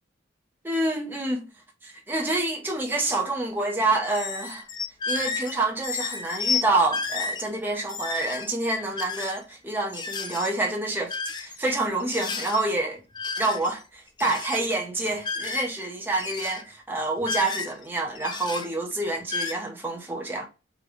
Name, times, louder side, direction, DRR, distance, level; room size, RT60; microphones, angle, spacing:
voice 1, 0.6-1.5 1.8-4.6 5.1-13.0 13.4-20.5, right 2 dB, 10° right, 0.6 m, -27 dB
sound 1, 4.0-5.6 5.8-6.6 6.9-7.4 7.8-8.5 9.0-9.4 9.9-10.5 11.1-11.7 12.0-12.6 13.1-13.8 14.1-14.6 15.2-15.9 16.1-16.6 17.2-17.8 18.2-18.7 19.2-19.5, left 4 dB, 20° left, 0.3 m, -31 dB
3.9 x 2.2 x 3.0 m
head